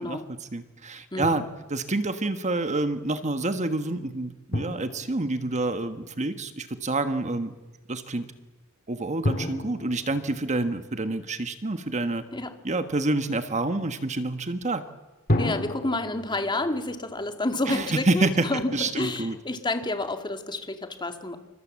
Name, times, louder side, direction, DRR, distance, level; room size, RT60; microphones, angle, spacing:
voice 1, 0.0-7.5 7.9-8.3 8.9-12.2 12.6-14.8 17.7-18.5 18.7-19.4, right 2 dB, 35° right, 9 dB, 1.4 m, -28 dB
voice 2, 1.1-1.4 12.3-12.5 15.4-21.4, left 2 dB, 20° left, 6 dB, 2.2 m, -29 dB
Drum, 1.2-2.0 4.5-6.3 9.2-11.7 15.3-18.4, left 1 dB, 40° left, 1.9 m, -33 dB
28.5 x 25.0 x 7.6 m, 1.1 s
head